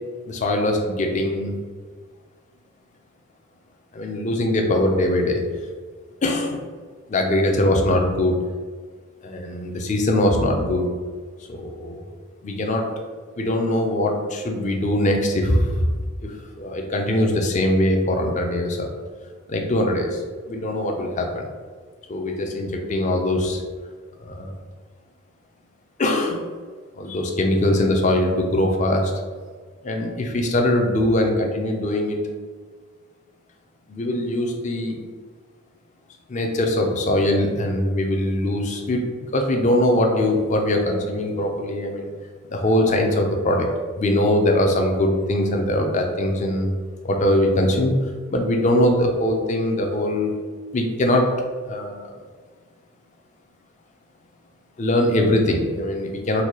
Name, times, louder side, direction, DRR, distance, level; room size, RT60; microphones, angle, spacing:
voice 1, 0.3-1.6 3.9-5.4 6.2-6.6 7.1-8.4 9.2-10.9 11.5-12.0 12.4-12.9 13.4-15.9 16.2-18.9 19.5-20.2 20.5-21.5 22.1-23.6 24.2-24.6 26.0-26.4 27.0-29.1 29.8-32.2 33.9-35.0 36.3-39.0 39.3-42.1 42.5-43.7 44.0-46.7 47.0-50.3 50.7-51.3 51.7-52.2 54.8-56.4, left 1 dB, 35° left, 2 dB, 0.4 m, -22 dB
4.0 x 2.2 x 3.0 m, 1.5 s
head